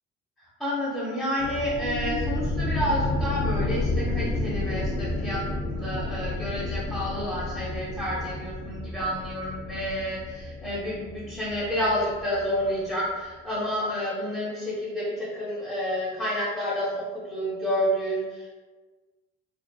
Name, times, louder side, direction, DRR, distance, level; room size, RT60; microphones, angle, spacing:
voice 1, 0.6-5.4 5.7-18.5, equal, ahead, -10 dB, 1.0 m, -29 dB
sound 1, 1.4-12.8, left 2 dB, 65° left, 0.6 m, -31 dB
2.7 x 2.3 x 2.2 m, 1.3 s
hypercardioid pair, 50°, 33 cm